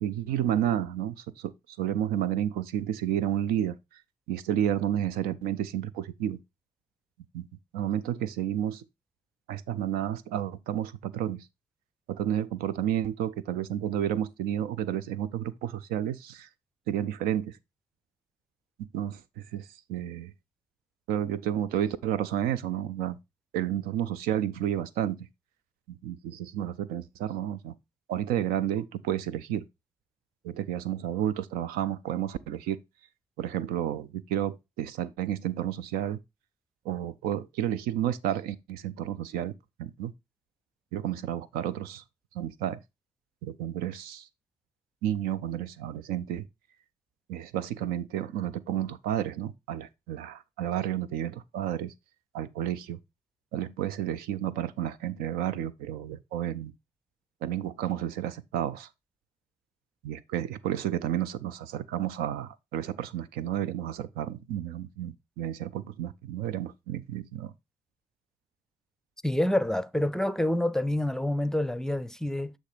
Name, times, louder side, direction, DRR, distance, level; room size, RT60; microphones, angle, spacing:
voice 1, 0.0-4.0 4.3-6.4 7.3-7.5 7.7-8.8 9.5-11.5 12.1-16.5 16.9-17.6 18.9-20.3 21.1-23.2 23.5-25.2 25.9-27.7 28.1-29.6 30.4-32.8 33.4-36.2 36.9-39.5 39.8-40.1 40.9-42.0 42.3-42.8 43.4-44.3 45.0-46.4 47.3-51.9 52.3-53.0 53.5-56.7 57.4-58.9 60.0-67.5, right 11 dB, 80° right, 0.4 m, -31 dB
voice 2, 69.2-72.5, left 1 dB, 5° left, 0.5 m, -27 dB
8.1 x 3.1 x 4.9 m
hypercardioid pair, 40°, 15 cm